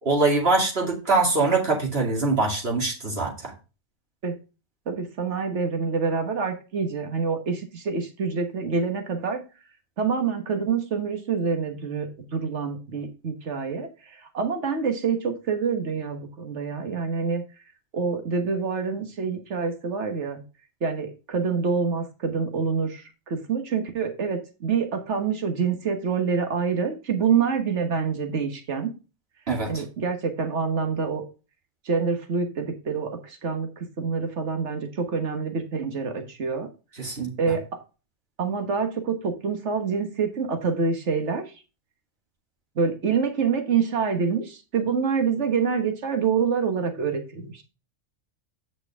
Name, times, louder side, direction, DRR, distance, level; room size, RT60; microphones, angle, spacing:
voice 1, 0.0-3.5 29.5-29.8 37.0-37.5, right 3 dB, 55° right, 1 dB, 2.7 m, -23 dB
voice 2, 4.9-9.4 10.0-17.4 17.9-20.4 20.8-28.9 29.7-31.2 31.8-36.7 37.4-37.8 38.4-41.5 42.8-47.6, right 5 dB, 75° right, 6 dB, 1.7 m, -26 dB
8.8 x 6.2 x 3.6 m, 0.31 s
omnidirectional pair, 1.2 m